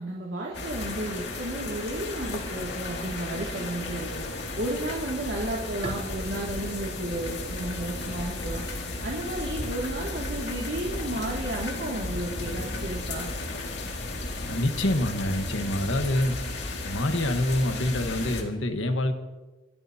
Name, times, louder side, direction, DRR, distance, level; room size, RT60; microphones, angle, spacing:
voice 1, 0.0-4.1 4.6-8.6 9.0-13.3, right 1 dB, 70° right, -3 dB, 2.4 m, -33 dB
sound 1, 0.5-18.4, left 2 dB, 60° left, 2.2 m, -34 dB
Bowed string instrument, 5.8-9.4, right 1 dB, 30° right, 1.1 m, -43 dB
voice 2, 14.4-16.3 16.8-19.1, left 1 dB, 85° left, 6 dB, 1.3 m, -26 dB
28.0 x 14.0 x 2.8 m, 1.2 s
head